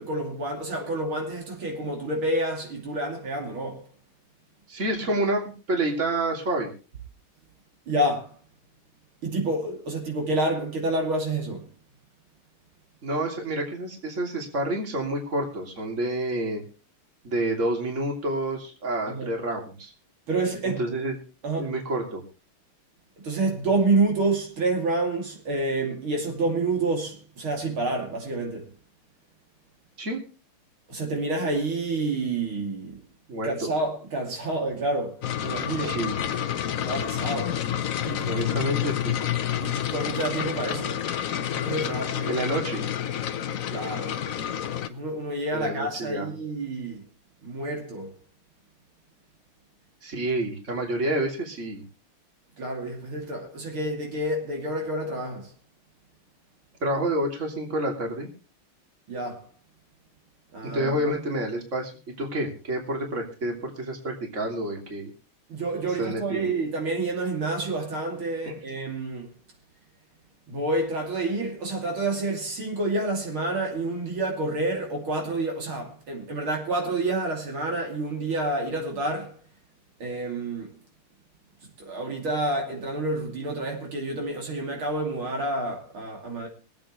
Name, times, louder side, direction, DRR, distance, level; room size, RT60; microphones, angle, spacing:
voice 1, 0.0-3.9 7.9-8.3 9.2-11.7 19.1-19.3 20.3-20.8 21.4-21.7 23.2-28.7 30.9-33.0 33.4-36.0 36.8-37.6 38.0-38.4 39.6-41.0 41.5-42.4 43.7-44.2 44.9-47.0 47.4-48.1 52.6-55.5 59.1-59.5 60.5-61.1 65.5-69.3 70.5-79.4 80.0-80.7 81.8-86.5, right 2 dB, 70° right, 3.5 m, -28 dB
voice 2, 4.7-5.4 5.7-6.7 13.0-16.6 17.2-19.9 20.8-21.2 21.5-22.2 30.0-30.2 33.3-33.7 35.8-36.2 38.3-39.2 42.3-42.9 45.5-46.3 50.0-51.8 56.8-58.3 60.6-61.9 62.2-65.1 66.0-66.5 68.5-68.6, right 1 dB, 35° right, 3.3 m, -28 dB
sound 1, 35.2-44.9, left 10 dB, 60° left, 0.8 m, -29 dB
24.5 x 8.8 x 3.1 m
omnidirectional pair, 2.4 m